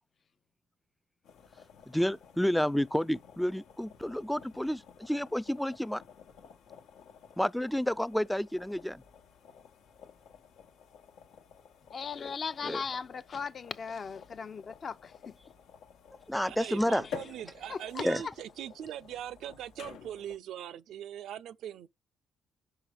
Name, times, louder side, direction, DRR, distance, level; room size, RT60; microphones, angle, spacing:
sound 1, 1.2-20.4, left 7 dB, 85° left, 1.1 m, -52 dB
voice 1, 1.9-6.0 7.4-9.0 12.6-12.8 16.3-17.1 18.0-18.2, equal, 5° left, 0.3 m, -30 dB
voice 2, 11.9-15.4 17.7-18.1, left 5 dB, 45° left, 0.6 m, -38 dB
voice 3, 16.4-21.9, right 10 dB, 80° right, 0.5 m, -41 dB
5.5 x 5.0 x 4.8 m
cardioid pair, 90°, 0 cm